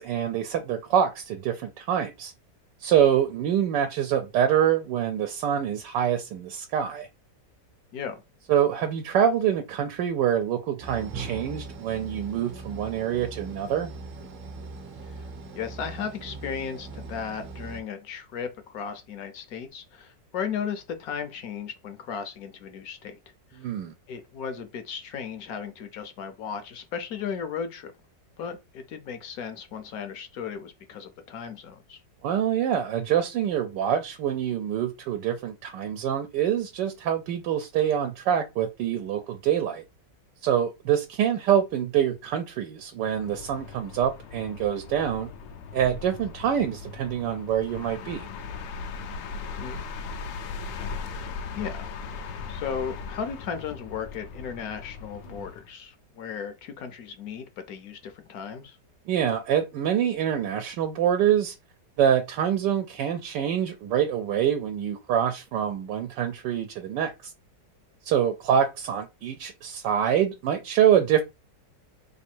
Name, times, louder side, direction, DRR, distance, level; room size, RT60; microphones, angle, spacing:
voice 1, 0.0-2.3 2.8-7.1 8.5-13.9 23.6-23.9 32.2-39.8 40.4-45.3 45.7-48.3 59.1-61.5 62.0-67.3 68.0-71.2, right 9 dB, 80° right, 1.2 m, -25 dB
sound 1, 10.8-17.8, right 3 dB, 55° right, 1.0 m, -40 dB
voice 2, 15.5-23.2 23.5-23.6 24.1-27.9 28.4-32.0 49.5-49.8 51.6-51.9 52.5-58.8, left 7 dB, 65° left, 1.0 m, -35 dB
sound 2, 43.0-55.7, left 5 dB, 85° left, 1.2 m, -38 dB
3.3 x 2.5 x 4.3 m
omnidirectional pair, 1.9 m